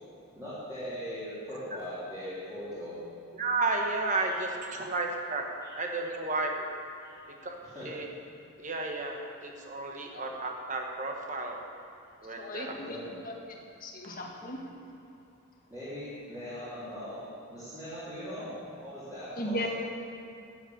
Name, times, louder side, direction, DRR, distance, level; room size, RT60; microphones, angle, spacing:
voice 1, 0.3-3.0 5.6-5.7 7.0-7.1 7.7-7.9 12.7-13.1 15.7-17.2 17.5-19.7, equal, 15° right, -14 dB, 3.7 m, -40 dB
voice 2, 3.4-5.5 5.7-6.7 7.4-7.6 7.8-8.1 8.6-11.6 12.2-12.8, right 3 dB, 35° right, 2 dB, 1.3 m, -32 dB
voice 3, 12.4-13.0 13.2-13.3 13.8-14.6 19.4-19.7, left 1 dB, 40° left, 0 dB, 1.6 m, -36 dB
12.5 x 8.8 x 7.2 m, 2.5 s
head